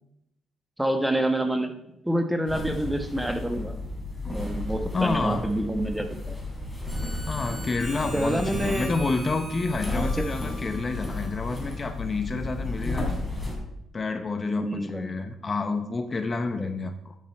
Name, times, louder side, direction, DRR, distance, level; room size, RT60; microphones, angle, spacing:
voice 1, 0.8-1.7 2.0-3.7 4.3-6.4 8.1-8.9 9.9-10.2 14.5-15.1 16.5-16.7, right 1 dB, 5° right, 6 dB, 1.2 m, -27 dB
sound 1, 2.5-13.5, left 2 dB, 10° left, 3.6 m, -33 dB
voice 2, 4.9-5.4 7.3-13.2 13.9-17.1, left 3 dB, 35° left, 8 dB, 0.8 m, -29 dB
Harmonica, 6.9-12.0, equal, 30° right, 3.8 m, -43 dB
11.5 x 6.5 x 4.5 m, 0.83 s
cardioid pair, 90°, 0 cm